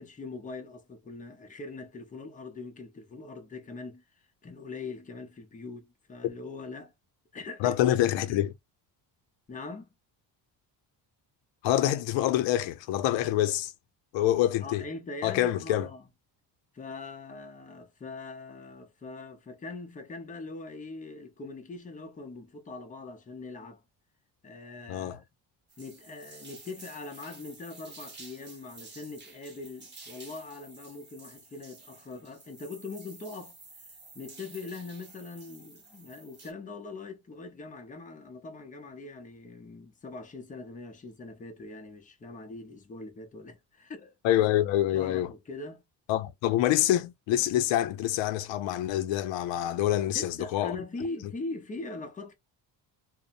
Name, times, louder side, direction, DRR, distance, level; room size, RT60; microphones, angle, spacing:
voice 1, 0.0-4.0 4.4-6.9 7.3-7.8 8.3-8.4 9.5-9.9 14.6-16.0 16.7-23.8 24.4-25.2 25.8-33.6 34.1-44.1 44.9-45.8 50.1-52.3, left 3 dB, 20° left, 0.6 m, -42 dB
voice 2, 7.6-8.5 11.6-13.7 14.1-14.8 15.2-15.9 24.9-25.2 44.2-45.3 46.1-50.8, left 13 dB, 85° left, 0.5 m, -26 dB
sound 1, 25.7-36.5, right 3 dB, 25° right, 1.0 m, -51 dB
2.7 x 2.0 x 2.4 m
cardioid pair, 135°, 43 cm